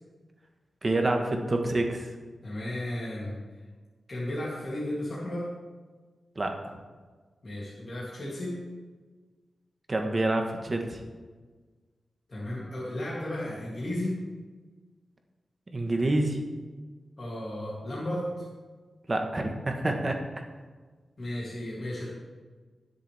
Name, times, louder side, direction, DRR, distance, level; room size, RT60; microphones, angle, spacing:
voice 1, 0.8-2.1 6.4-6.7 9.9-11.0 15.7-16.4 19.1-20.2, right 2 dB, 25° right, 3 dB, 1.3 m, -27 dB
voice 2, 2.4-3.4 4.1-5.4 7.4-8.6 12.3-14.2 17.2-18.4 21.2-22.1, left 1 dB, 35° left, -7 dB, 2.8 m, -34 dB
20.5 x 6.8 x 3.5 m, 1.4 s
wide cardioid pair, 165°, 0 cm